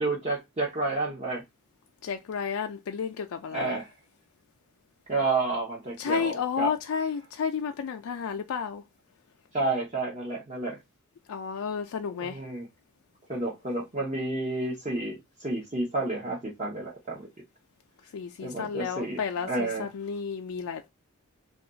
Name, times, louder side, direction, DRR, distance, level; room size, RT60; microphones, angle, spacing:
voice 1, 0.0-1.4 3.5-3.9 5.1-6.7 9.5-10.8 12.2-12.6 13.3-17.3 18.4-19.2 19.5-19.9, right 2 dB, 30° right, 0.7 m, -30 dB
voice 2, 2.0-3.8 6.0-8.8 11.3-12.4 18.1-20.9, left 6 dB, 75° left, 0.4 m, -32 dB
2.4 x 2.2 x 3.8 m
head